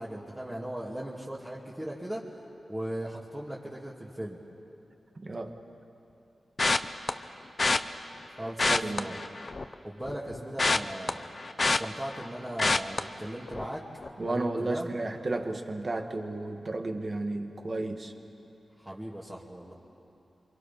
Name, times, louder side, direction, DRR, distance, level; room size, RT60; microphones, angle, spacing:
voice 1, 0.0-2.2 2.7-4.4 8.3-9.2 9.8-11.4 11.6-13.8 14.3-14.9 18.8-19.7, right 1 dB, 20° right, -6 dB, 2.7 m, -38 dB
voice 2, 5.2-5.5 8.7-9.2 14.2-18.1, right 2 dB, 45° right, 5 dB, 1.9 m, -33 dB
sound 1, 6.6-7.1 7.6-7.8 8.5-9.7 10.0-12.3 12.6-13.0 13.5-13.7 14.0-14.1, left 3 dB, 45° left, 0.8 m, -26 dB
27.5 x 24.0 x 6.0 m, 2.9 s
cardioid pair, 55°, 0 cm